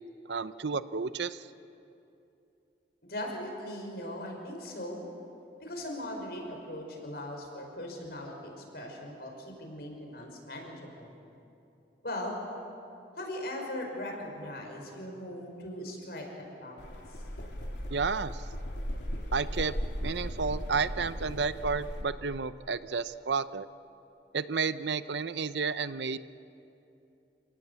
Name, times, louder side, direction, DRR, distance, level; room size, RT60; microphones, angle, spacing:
voice 1, 0.3-1.4 17.9-18.4 19.3-19.7 20.0-23.7 24.3-26.2, right 5 dB, 80° right, 14 dB, 0.7 m, -31 dB
voice 2, 3.0-5.1 5.6-11.1 12.0-12.4 13.2-17.2, left 1 dB, 65° left, 1 dB, 5.3 m, -39 dB
sound 1, 16.8-22.0, equal, 85° left, 3.3 m, -37 dB
28.5 x 18.5 x 8.3 m, 2.8 s
head